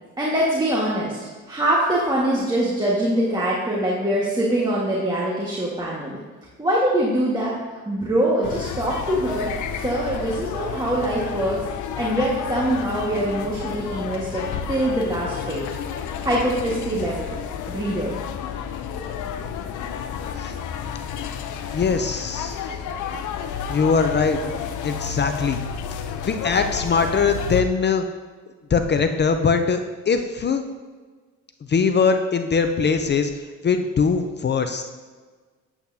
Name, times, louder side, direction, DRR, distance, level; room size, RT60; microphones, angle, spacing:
voice 1, 0.2-1.2 1.5-6.2 6.6-7.6 7.8-9.5 9.8-11.6 11.9-15.6 16.2-17.4 17.7-18.2, right 1 dB, 15° right, -6 dB, 1.6 m, -23 dB
sound 1, 8.4-27.6, left 7 dB, 75° left, 0.7 m, -31 dB
voice 2, 21.7-22.7 23.7-24.4 24.8-25.6 26.2-28.0 28.7-29.8 30.1-30.6 31.7-34.8, left 5 dB, 35° left, 7 dB, 0.6 m, -21 dB
8.4 x 8.2 x 2.8 m, 1.4 s
cardioid pair, 90°, 30 cm